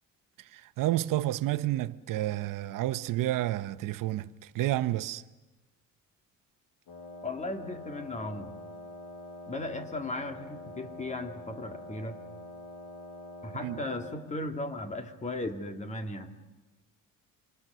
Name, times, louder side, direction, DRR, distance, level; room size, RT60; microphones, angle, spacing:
voice 1, 0.4-5.2 13.6-13.8, right 15 dB, 85° right, 0.8 m, -30 dB
Wind instrument woodwind instrument, 6.9-14.3, left 2 dB, 75° left, 6.9 m, -45 dB
voice 2, 7.2-8.5 9.5-12.2 13.4-16.3, left 2 dB, 20° left, 2.0 m, -36 dB
27.5 x 26.5 x 6.8 m
cardioid pair, 150°, 32 cm